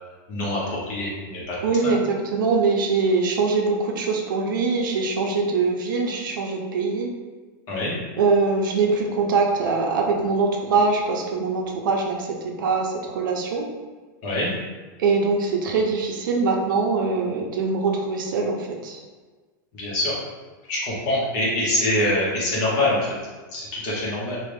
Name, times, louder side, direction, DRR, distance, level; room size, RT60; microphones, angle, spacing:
voice 1, 0.3-1.6 1.8-1.9 7.7-7.9 14.2-14.5 19.7-20.1 20.7-23.2 23.5-24.4, left 1 dB, 35° left, -5 dB, 1.0 m, -24 dB
voice 2, 1.6-7.1 8.2-13.7 15.0-19.0, right 4 dB, 80° right, 1 dB, 0.6 m, -23 dB
3.2 x 2.4 x 3.3 m, 1.4 s
supercardioid pair, 170°, 11 cm